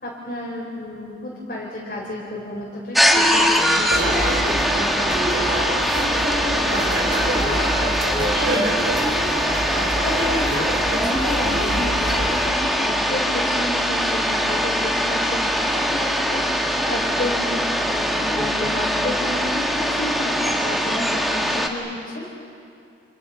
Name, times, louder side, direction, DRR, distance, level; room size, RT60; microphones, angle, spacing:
voice 1, 0.0-22.3, left 1 dB, 50° left, -5 dB, 4.8 m, -32 dB
sound 1, 2.9-21.7, equal, ahead, 1.6 m, -22 dB
sound 2, 3.9-12.5, right 1 dB, 70° right, 3.9 m, -26 dB
30.0 x 29.0 x 5.7 m, 2.5 s
head